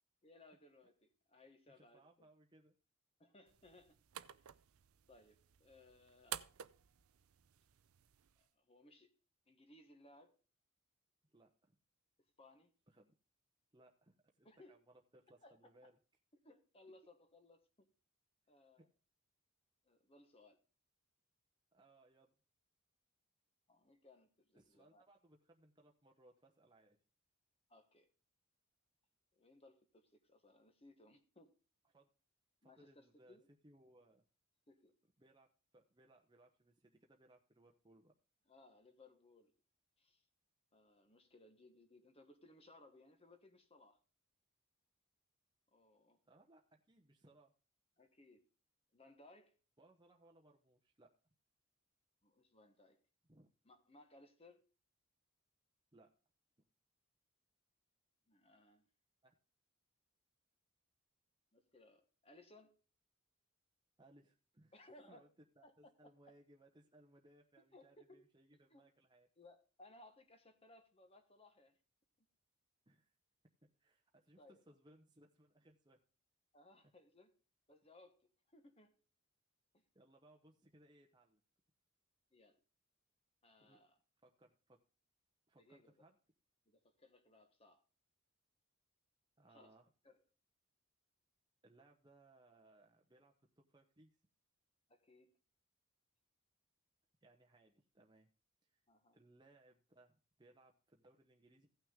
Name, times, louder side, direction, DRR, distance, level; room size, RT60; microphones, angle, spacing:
voice 1, 0.2-2.0 3.2-4.0 4.3-4.5 5.1-6.4 8.4-9.1 9.5-10.3 12.4-12.7 14.4-14.8 15.4-15.9 16.4-17.9 18.5-18.9 19.8-20.6 23.7-25.0 27.7-28.1 29.3-31.6 32.6-33.5 34.7-34.9 38.5-39.5 40.0-40.3 40.7-44.0 45.7-46.2 48.0-48.5 48.9-49.6 52.2-53.0 53.6-54.7 58.3-58.9 61.5-62.8 64.7-65.3 65.6-65.9 67.6-68.2 68.5-68.8 69.4-71.8 74.4-74.6 76.5-77.3 77.7-79.0 79.7-79.8 82.3-82.6 83.4-84.0 85.6-85.9 86.7-87.8 89.5-89.7 90.0-90.2 94.9-95.4 98.9-99.2, left 2 dB, 25° left, 7 dB, 1.2 m, -64 dB
voice 2, 1.7-2.8 11.3-11.8 12.9-13.1 13.7-16.0 18.8-18.9 21.7-22.3 24.5-27.0 31.9-32.1 32.6-34.2 35.2-38.1 46.3-47.5 49.8-51.1 53.3-53.5 55.9-56.1 59.2-59.3 64.0-65.3 65.6-69.3 72.9-73.1 73.8-76.0 79.9-81.4 83.6-83.8 84.2-84.8 85.5-86.2 89.4-89.9 91.6-94.2 97.2-98.3 98.6-98.8 99.1-101.7, right 1 dB, 20° right, 1 dB, 0.9 m, -67 dB
sound 1, 3.5-8.5, right 10 dB, 80° right, 0.5 m, -52 dB
16.0 x 6.1 x 3.6 m, 0.34 s
head